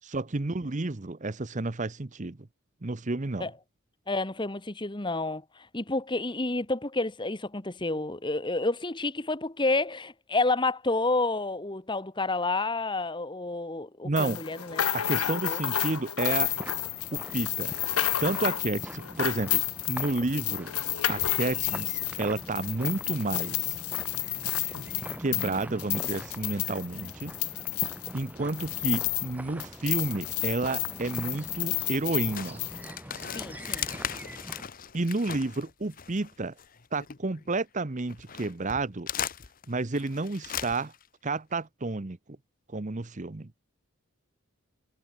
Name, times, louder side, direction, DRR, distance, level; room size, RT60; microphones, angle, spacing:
voice 1, 0.0-2.4 2.8-3.5 14.0-14.4 14.9-16.5 17.1-19.6 19.9-20.7 21.1-23.8 25.2-27.4 28.1-32.6 34.9-36.5 36.9-39.1 39.7-40.9 41.2-42.2 42.7-43.5, right 2 dB, 35° right, 0.8 m, -31 dB
voice 2, 4.1-15.6 33.3-33.9, left 2 dB, 20° left, 1.3 m, -30 dB
sound 1, 14.2-29.3 29.6-32.8, left 14 dB, 90° left, 1.0 m, -31 dB
sound 2, 16.4-34.6, right 1 dB, 5° right, 2.8 m, -43 dB
sound 3, 32.4-37.6 38.0-41.1, left 9 dB, 40° left, 1.0 m, -38 dB
head